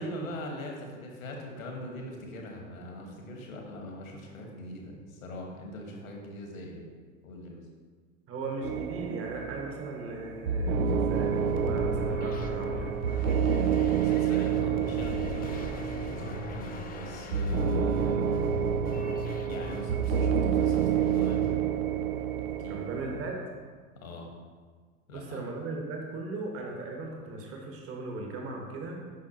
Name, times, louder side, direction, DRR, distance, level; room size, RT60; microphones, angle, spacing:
voice 1, 0.0-6.9 7.2-7.6 14.0-18.3 19.5-21.5 22.6-22.8 23.9-24.3 25.1-25.4, left 1 dB, 70° left, 1 dB, 1.5 m, -41 dB
voice 2, 8.3-12.9 14.4-14.8 22.7-23.4 25.1-29.0, right 2 dB, 35° right, 1 dB, 1.3 m, -38 dB
sound 1, 8.6-23.2, right 7 dB, 75° right, 0.5 m, -29 dB
sound 2, 11.1-20.3 20.6-21.4, left 4 dB, 20° left, 0.5 m, -40 dB
8.3 x 5.9 x 2.8 m, 1.5 s
figure-of-eight pair, 80°, 42 cm